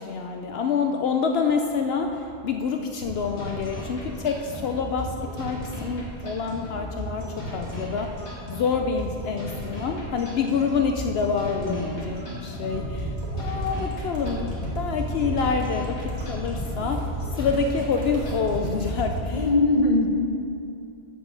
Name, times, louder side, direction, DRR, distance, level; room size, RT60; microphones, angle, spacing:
voice 1, 0.0-8.2 8.5-13.1 13.4-19.4, left 5 dB, 70° left, 4 dB, 0.8 m, -27 dB
sound 1, 3.0-19.0, equal, 90° left, 2.6 m, -36 dB
sound 2, 3.2-19.2, left 4 dB, 80° right, 1.9 m, -46 dB
voice 2, 11.6-12.0 13.7-14.1 19.3-20.1, left 2 dB, 35° left, 3 dB, 0.9 m, -23 dB
sound 3, 12.7-19.4, right 1 dB, 65° right, 2.5 m, -33 dB
7.3 x 7.2 x 7.5 m, 2.5 s
omnidirectional pair, 1.1 m